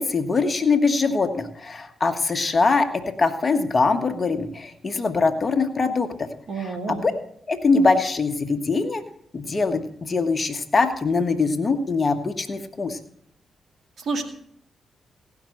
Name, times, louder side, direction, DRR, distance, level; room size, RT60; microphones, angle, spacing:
voice 1, 0.0-6.3 6.6-7.1 7.5-9.0 9.3-13.0, left 4 dB, 45° left, 8 dB, 1.5 m, -22 dB
voice 2, 6.5-7.0 14.0-14.2, right 3 dB, 65° right, 6 dB, 2.1 m, -28 dB
17.0 x 6.0 x 6.5 m, 0.66 s
supercardioid pair, 45°, 0 cm